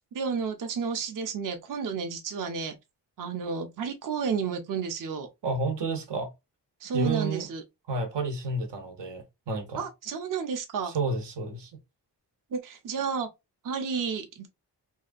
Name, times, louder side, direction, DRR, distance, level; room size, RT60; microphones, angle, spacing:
voice 1, 0.1-2.8 3.2-5.3 6.8-7.6 9.8-10.9 12.5-13.3 13.6-14.5, right 6 dB, 50° right, 0.6 m, -31 dB
voice 2, 5.4-6.3 6.9-7.5 7.9-9.8 10.8-11.7, right 3 dB, 90° right, 0.8 m, -30 dB
2.7 x 2.4 x 2.4 m
wide cardioid pair, 90°, 41 cm